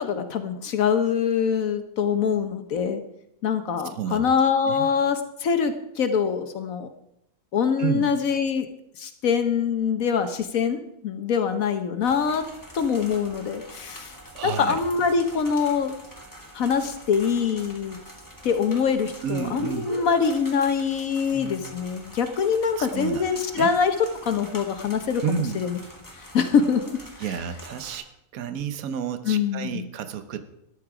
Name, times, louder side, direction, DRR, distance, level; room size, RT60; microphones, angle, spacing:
voice 1, 0.0-3.0 3.4-6.9 7.5-8.7 9.0-12.4 12.7-14.2 14.4-15.9 16.5-18.0 18.4-25.8 26.3-27.0 29.3-29.8, left 6 dB, 70° left, 8 dB, 1.3 m, -24 dB
voice 2, 4.0-4.3 4.7-4.9 7.8-8.0 14.3-14.8 19.2-19.9 22.8-23.2 23.6-23.7 25.2-25.6 27.2-28.1 28.3-30.4, right 8 dB, 75° right, 10 dB, 1.3 m, -30 dB
sound 1, 12.0-28.0, equal, 15° left, 2.4 m, -45 dB
Speech, 14.1-14.2 19.4-20.1 21.3-21.6, left 1 dB, 20° right, 5.3 m, -35 dB
13.5 x 12.0 x 4.9 m, 0.79 s
omnidirectional pair, 1.5 m